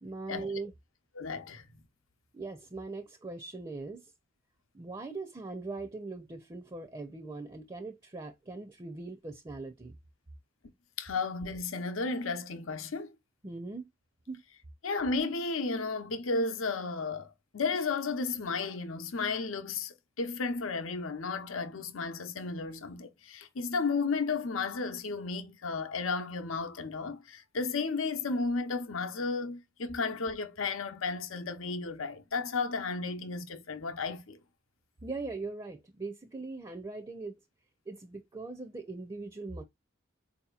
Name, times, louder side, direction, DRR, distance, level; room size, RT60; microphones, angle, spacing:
voice 1, 0.0-0.7 2.3-4.1 4.7-10.0 13.4-13.9 14.3-14.4 35.0-37.4 37.9-39.6, right 3 dB, 20° right, 0.4 m, -40 dB
voice 2, 1.1-1.7 11.0-13.1 14.8-34.4, left 4 dB, 85° left, 0.7 m, -33 dB
4.5 x 2.8 x 2.3 m
head